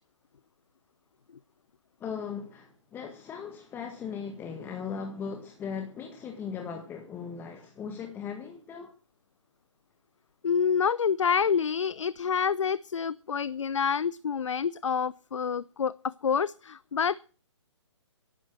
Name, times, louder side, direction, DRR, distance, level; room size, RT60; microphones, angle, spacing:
voice 1, 2.0-8.9, left 6 dB, 15° left, 1.7 m, -38 dB
voice 2, 10.4-17.2, left 6 dB, 75° left, 0.6 m, -27 dB
14.5 x 11.5 x 6.1 m
hypercardioid pair, 140°, 16 cm